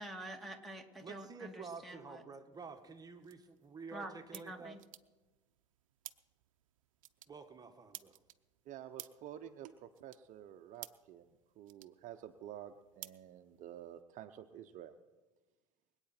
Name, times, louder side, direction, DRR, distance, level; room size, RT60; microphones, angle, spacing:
voice 1, 0.0-2.2 3.9-4.8, right 1 dB, ahead, 5 dB, 2.5 m, -47 dB
voice 2, 1.0-4.8 7.3-8.2, right 4 dB, 25° right, 6 dB, 1.6 m, -50 dB
sound 1, 2.5-14.0, right 13 dB, 80° right, 0.7 m, -57 dB
voice 3, 8.7-14.9, right 11 dB, 50° right, 8 dB, 0.8 m, -50 dB
24.5 x 8.9 x 4.4 m, 1.2 s
hypercardioid pair, 80°, 17 cm